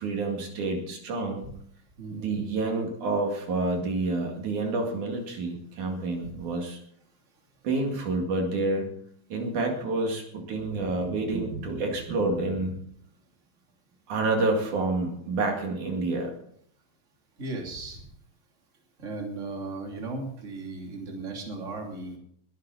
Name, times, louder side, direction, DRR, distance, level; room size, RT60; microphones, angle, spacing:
voice 1, 0.0-1.5 2.1-6.8 7.6-8.9 9.3-12.8 14.1-16.3, right 2 dB, 70° right, 2 dB, 3.7 m, -28 dB
voice 2, 2.0-2.4 17.4-18.0 19.0-22.2, right 3 dB, 25° right, 1 dB, 3.1 m, -36 dB
21.5 x 11.0 x 4.1 m, 0.67 s
omnidirectional pair, 3.6 m